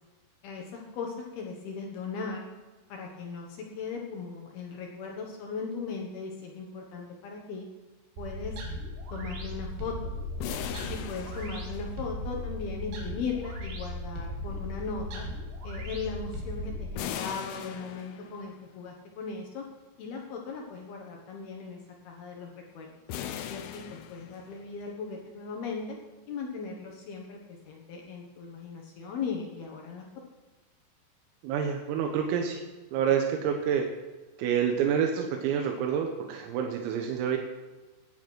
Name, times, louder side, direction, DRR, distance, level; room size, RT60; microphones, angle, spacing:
voice 1, 0.4-2.5 2.9-7.7 8.2-8.6 9.1-10.1 10.9-15.2 15.6-19.7 20.0-21.8 22.0-23.0 23.5-26.0 26.3-30.0, left 5 dB, 65° left, 0 dB, 2.8 m, -38 dB
sound 1, 8.2-16.9, left 1 dB, 65° right, 4.6 m, -37 dB
sound 2, 10.4-12.3 17.0-18.6 23.1-24.7, left 10 dB, 80° left, 3.1 m, -39 dB
voice 2, 31.4-32.6 32.9-33.9 34.4-37.4, right 8 dB, 90° right, 3 dB, 3.9 m, -28 dB
17.5 x 10.0 x 4.6 m, 1.2 s
omnidirectional pair, 5.9 m